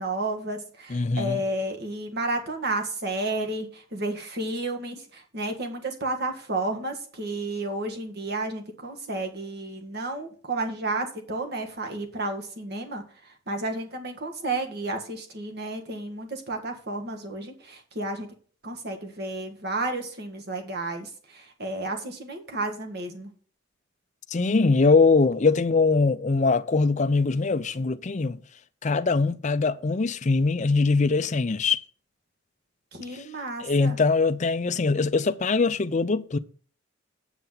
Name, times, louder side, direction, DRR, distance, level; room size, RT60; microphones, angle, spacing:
voice 1, 0.0-13.0 13.5-18.3 18.6-23.3 32.9-34.0, right 2 dB, 50° right, 1.8 m, -32 dB
voice 2, 0.9-1.4 24.3-28.4 28.8-31.8 33.1-33.2 33.6-36.4, left 4 dB, 35° left, 0.5 m, -22 dB
8.0 x 7.6 x 5.7 m
head